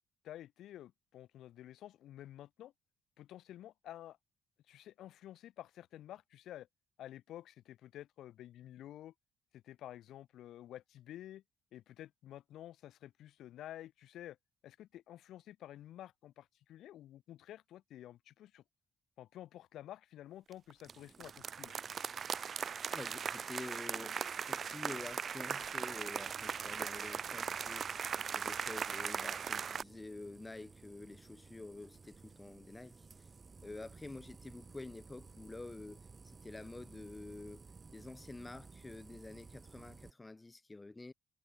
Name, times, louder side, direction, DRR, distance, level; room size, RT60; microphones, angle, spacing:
voice 1, 0.2-2.7 3.2-4.2 4.7-6.7 7.0-9.1 9.5-11.4 11.7-14.4 14.6-18.6 19.2-21.7, left 12 dB, 80° left, 1.7 m, -51 dB
sound 1, 20.5-20.9 21.2-29.8, right 7 dB, 50° right, 0.5 m, -39 dB
sound 2, 20.8-40.1, right 4 dB, 30° right, 6.3 m, -58 dB
voice 2, 22.9-28.0 28.2-33.3 33.6-37.7 37.9-41.1, left 2 dB, 20° left, 0.8 m, -48 dB
cardioid pair, 90°, 0 cm